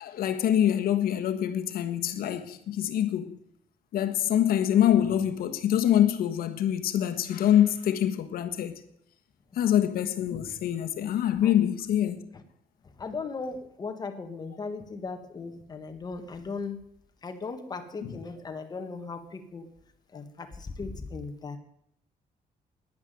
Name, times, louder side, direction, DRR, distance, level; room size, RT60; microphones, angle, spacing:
voice 1, 0.0-3.4 3.9-8.8 9.6-12.2 18.0-18.2, left 10 dB, 80° left, 1.4 m, -25 dB
voice 2, 13.0-16.8 17.2-19.6 20.1-21.6, left 4 dB, 25° left, 1.6 m, -37 dB
11.0 x 10.0 x 9.3 m
cardioid pair, 170°, 15 cm